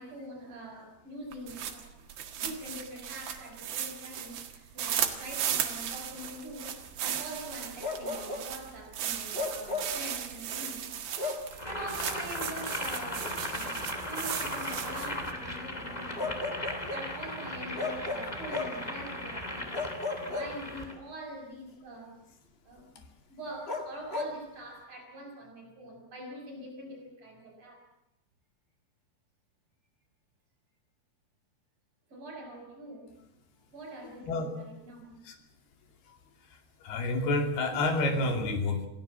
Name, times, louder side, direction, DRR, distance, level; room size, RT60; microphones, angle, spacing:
voice 1, 0.0-2.0 2.4-10.9 11.5-16.4 16.9-19.8 20.2-22.2 22.6-22.9 23.3-27.9 32.1-33.2 33.7-35.2, right 1 dB, 40° right, 7.1 m, -44 dB
sound 1, 1.3-15.3, right 9 dB, 80° right, 3.8 m, -36 dB
Bark, 7.8-8.5 9.3-10.0 11.2-11.5 13.2-13.4 16.2-17.1 17.8-18.9 19.7-21.0 23.7-24.4, left 3 dB, 35° left, 1.0 m, -35 dB
Boiling, 11.5-20.9, left 1 dB, 15° left, 1.9 m, -37 dB
voice 2, 36.8-38.9, left 2 dB, 80° left, 4.5 m, -29 dB
28.0 x 16.5 x 7.4 m
omnidirectional pair, 4.5 m